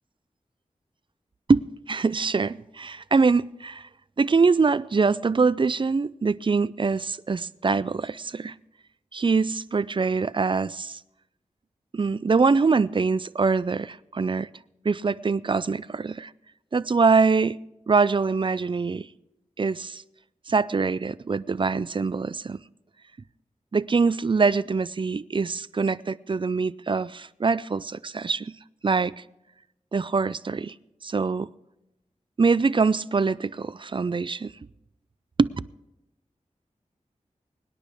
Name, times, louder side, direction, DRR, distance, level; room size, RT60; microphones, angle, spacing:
voice 1, 1.5-3.9 4.2-8.5 9.1-11.0 11.9-14.5 14.8-16.3 16.7-17.6 17.9-19.1 19.6-20.0 20.5-22.6 23.7-28.5 28.8-29.1 29.9-30.7 31.0-31.5 32.4-34.5 35.4-35.5, right 4 dB, 40° right, 0.4 m, -24 dB
24.0 x 10.0 x 3.5 m
wide cardioid pair, 70°, 13 cm